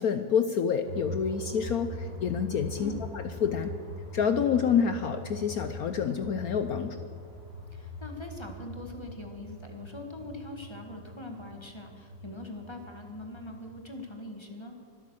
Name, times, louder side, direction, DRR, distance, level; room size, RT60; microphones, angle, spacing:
voice 1, 0.0-3.7 4.1-7.1, left 7 dB, 75° left, 9 dB, 0.8 m, -28 dB
sound 1, 0.8-13.8, left 1 dB, 50° right, 5.9 m, -42 dB
voice 2, 7.7-14.7, left 2 dB, 15° left, 3 dB, 1.4 m, -42 dB
24.5 x 8.4 x 6.4 m, 2.2 s
omnidirectional pair, 2.3 m